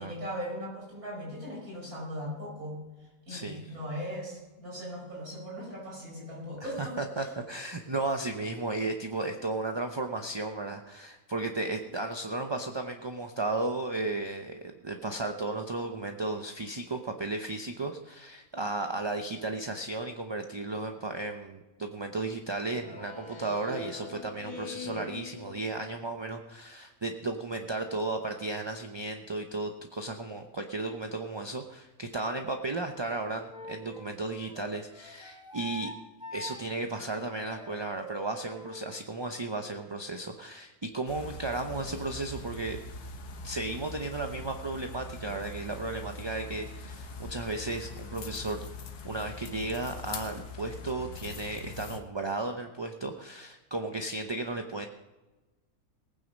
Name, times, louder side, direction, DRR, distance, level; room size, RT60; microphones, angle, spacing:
voice 1, 0.0-7.3, equal, 75° right, -3 dB, 5.9 m, -39 dB
voice 2, 3.3-3.6 6.6-35.9 36.3-42.8 43.4-48.6 49.0-54.9, right 2 dB, 25° right, 4 dB, 0.6 m, -34 dB
Speech synthesizer, 22.7-26.2, left 5 dB, 65° left, 2.1 m, -44 dB
Wind instrument woodwind instrument, 33.5-38.9, equal, 5° right, 2.7 m, -45 dB
sound 1, 41.1-52.0, left 3 dB, 85° left, 1.6 m, -42 dB
19.5 x 9.4 x 5.3 m, 1.1 s
omnidirectional pair, 1.6 m